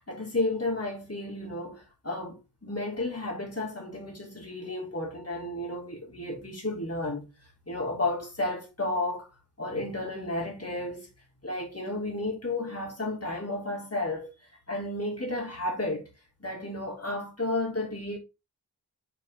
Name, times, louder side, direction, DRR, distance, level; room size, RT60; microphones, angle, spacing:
voice 1, 0.0-7.3 7.7-9.3 9.6-11.1 11.4-14.3 14.7-16.1 16.4-18.2, left 2 dB, 35° left, 3.5 m, -32 dB
7.4 x 4.6 x 3.7 m
wide cardioid pair, 80°, 40 cm